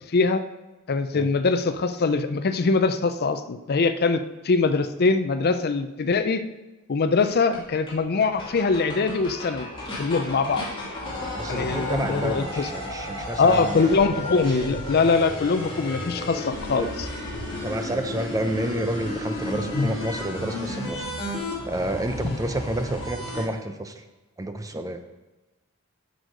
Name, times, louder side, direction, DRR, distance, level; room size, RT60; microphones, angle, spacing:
voice 1, 0.9-6.4 6.9-9.7 10.0-10.7 11.5-12.7 13.4-17.1 19.7-19.9 22.2-22.3, left 4 dB, 45° left, 10 dB, 0.5 m, -23 dB
sound 1, 7.2-7.3 7.5-7.6 7.9-8.0 8.2-23.4, left 1 dB, 25° left, 2.3 m, -33 dB
voice 2, 11.0-14.3 16.7-16.9 17.6-21.1 21.3-24.0 24.4-25.0, right 1 dB, 15° right, 7 dB, 0.5 m, -30 dB
8.1 x 6.4 x 5.2 m, 1.1 s
head